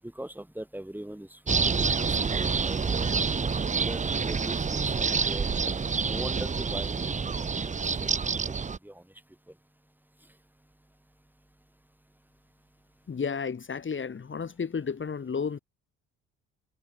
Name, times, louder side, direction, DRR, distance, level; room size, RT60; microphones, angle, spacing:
voice 1, 0.0-3.0 3.8-7.1 7.4-8.1 8.5-8.6 8.8-9.0, right 1 dB, 5° right, 7.8 m, -41 dB
sound 1, 1.5-8.8, right 5 dB, 20° right, 1.0 m, -27 dB
voice 2, 13.1-15.6, left 6 dB, 35° left, 5.7 m, -32 dB
supercardioid pair, 75°, 32 cm